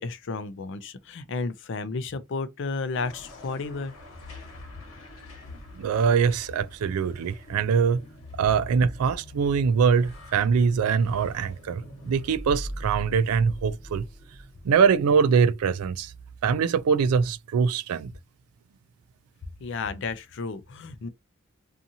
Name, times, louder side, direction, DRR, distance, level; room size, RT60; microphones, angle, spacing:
voice 1, 0.0-3.9 19.6-21.1, left 4 dB, 60° left, 0.4 m, -32 dB
sound 1, 2.9-15.4, equal, 75° left, 1.2 m, -42 dB
voice 2, 5.8-8.0 8.4-14.0 14.6-16.1 16.4-18.1, right 6 dB, 85° right, 0.3 m, -23 dB
2.7 x 2.4 x 2.6 m
head